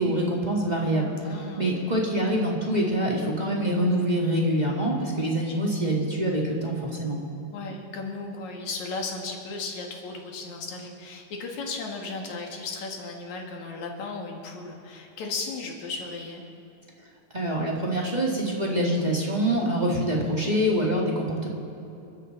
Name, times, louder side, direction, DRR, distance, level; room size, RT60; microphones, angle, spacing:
voice 1, 0.0-1.1 1.6-7.2 17.3-21.5, right 1 dB, 15° right, -3 dB, 1.7 m, -25 dB
voice 2, 1.2-1.9 5.0-5.1 5.5-5.6 7.5-16.4 20.2-20.4, left 3 dB, 75° left, 0 dB, 3.2 m, -35 dB
28.0 x 13.0 x 4.0 m, 2.9 s
omnidirectional pair, 3.3 m